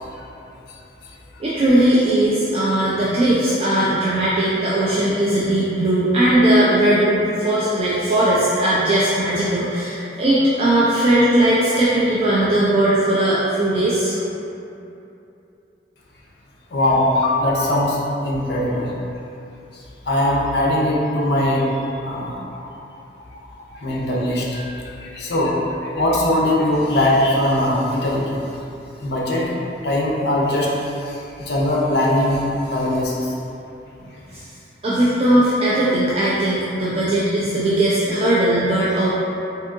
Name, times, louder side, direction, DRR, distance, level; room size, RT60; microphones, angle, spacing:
voice 1, 0.7-1.2 16.7-18.0 18.2-18.9 19.7-22.8 23.4-28.4 29.0-29.5 29.8-33.4, left 1 dB, 65° left, -3 dB, 0.5 m, -21 dB
voice 2, 1.4-14.1 34.3-34.4 34.8-39.1, right 1 dB, 35° right, -8 dB, 0.3 m, -18 dB
3.5 x 2.7 x 2.5 m, 2.8 s
head